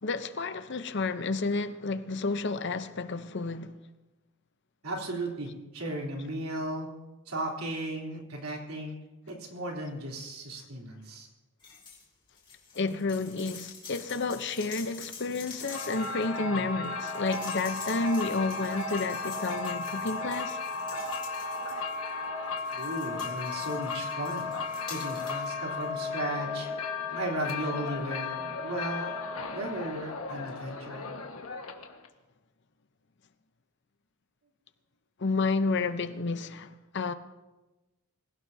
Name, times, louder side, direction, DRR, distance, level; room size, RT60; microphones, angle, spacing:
voice 1, 0.0-3.8 12.7-20.6 35.2-37.1, left 3 dB, 55° left, 0.7 m, -31 dB
voice 2, 4.8-6.9 7.3-9.0 9.3-11.3 22.8-24.5 24.9-26.7 27.1-29.2 29.5-31.1, right 1 dB, 80° right, 3.5 m, -35 dB
sound 1, 11.6-12.0 12.3-22.1 22.6-25.5 25.8-25.9, left 5 dB, 20° left, 2.8 m, -47 dB
sound 2, 15.6-32.1, left 4 dB, 80° left, 1.5 m, -35 dB
25.0 x 16.5 x 2.8 m
head